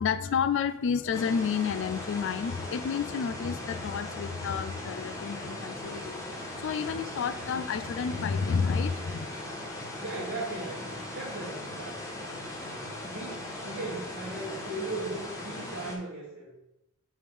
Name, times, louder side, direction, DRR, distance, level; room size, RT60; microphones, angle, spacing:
voice 1, 0.0-6.3 6.5-9.3, left 6 dB, 60° left, 12 dB, 0.3 m, -30 dB
sound 1, 1.1-15.9, left 1 dB, 15° left, 1.2 m, -39 dB
voice 2, 9.8-12.0 13.0-16.5, right 2 dB, 60° right, -7 dB, 1.5 m, -38 dB
6.8 x 3.7 x 4.8 m, 0.88 s
head